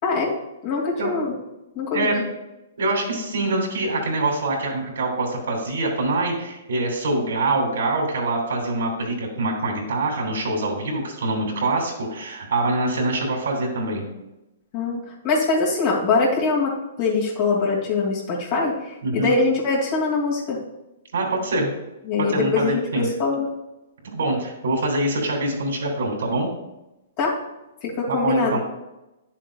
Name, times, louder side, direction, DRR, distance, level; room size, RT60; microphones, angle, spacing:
voice 1, 0.0-0.3 0.6-1.3 1.8-2.2 14.7-20.6 22.1-23.5 27.2-27.4 27.8-28.6, left 4 dB, 45° left, -4 dB, 2.4 m, -23 dB
voice 2, 2.8-14.1 19.0-19.3 21.1-21.7 22.3-23.0 24.0-26.5 28.1-28.6, right 2 dB, 80° right, -1 dB, 2.8 m, -24 dB
10.0 x 7.4 x 2.4 m, 0.95 s
hypercardioid pair, 130°, 0 cm